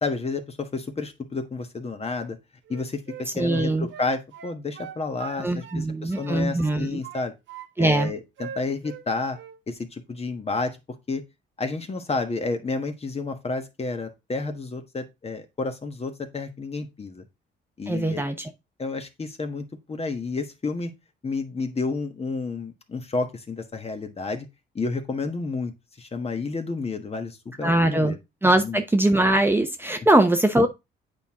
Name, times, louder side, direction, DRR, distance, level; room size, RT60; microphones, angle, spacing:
voice 1, 0.0-2.4 2.7-3.0 3.4-7.3 7.8-9.4 9.7-10.8 11.1-11.2 11.6-17.2 17.8-18.2 18.8-20.9 21.2-24.5 24.7-28.2 28.6-28.8, left 3 dB, 30° left, 1.3 m, -30 dB
Wind instrument woodwind instrument, 2.6-5.8 6.1-7.7 7.9-9.1 9.3-9.6, right 8 dB, 70° right, 0.9 m, -41 dB
voice 2, 3.4-3.9 5.4-7.0 7.8-8.1 17.9-18.5 27.6-28.1 28.4-30.7, right 1 dB, 10° right, 0.9 m, -21 dB
8.2 x 4.5 x 3.6 m
cardioid pair, 90°, 20 cm